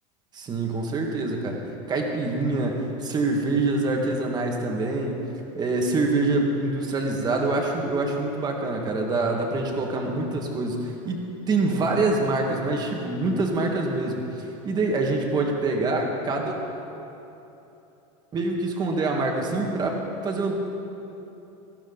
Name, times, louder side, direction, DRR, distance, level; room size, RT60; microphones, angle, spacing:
voice 1, 0.3-1.6 1.9-5.3 5.5-16.5 18.3-20.5, right 2 dB, 25° right, 1 dB, 1.8 m, -25 dB
18.5 x 14.0 x 4.0 m, 3.0 s
supercardioid pair, 145°, 17 cm